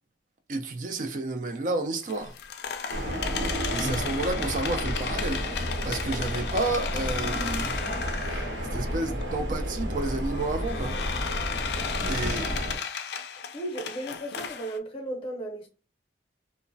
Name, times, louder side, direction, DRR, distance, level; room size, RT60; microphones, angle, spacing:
voice 1, 0.5-2.4 3.4-7.8 8.2-11.0 11.6-12.5, right 2 dB, 45° right, 0.4 m, -31 dB
sound 1, 2.0-8.8 9.2-9.3 10.0-14.8, left 6 dB, 65° left, 0.3 m, -35 dB
sound 2, 2.9-12.8, equal, 85° right, 0.9 m, -31 dB
voice 2, 13.5-15.7, right 1 dB, 30° left, 0.6 m, -35 dB
3.0 x 2.1 x 2.5 m
head